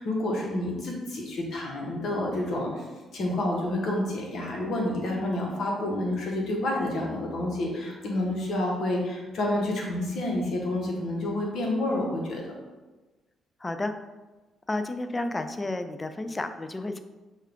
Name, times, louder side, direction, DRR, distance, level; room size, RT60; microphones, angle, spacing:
voice 1, 0.0-2.9 3.1-12.4, left 1 dB, 65° left, -1 dB, 1.1 m, -29 dB
voice 2, 13.6-13.9 14.7-17.0, left 2 dB, 20° left, 8 dB, 0.3 m, -31 dB
5.4 x 2.4 x 3.4 m, 1.2 s
cardioid pair, 90°, 0 cm